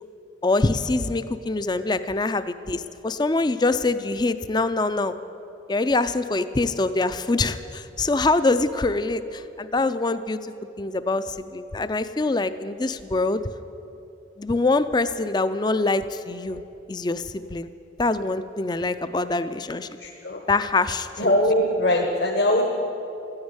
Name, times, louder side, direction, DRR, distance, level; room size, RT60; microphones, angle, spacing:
voice 1, 0.4-5.1 5.7-13.4 14.4-16.6 16.9-17.7 18.0-19.9 20.5-21.3, left 3 dB, 20° left, 12 dB, 0.4 m, -24 dB
voice 2, 20.0-20.4 21.2-22.6, left 1 dB, 60° left, 0 dB, 1.3 m, -21 dB
13.0 x 9.6 x 9.7 m, 2.9 s
head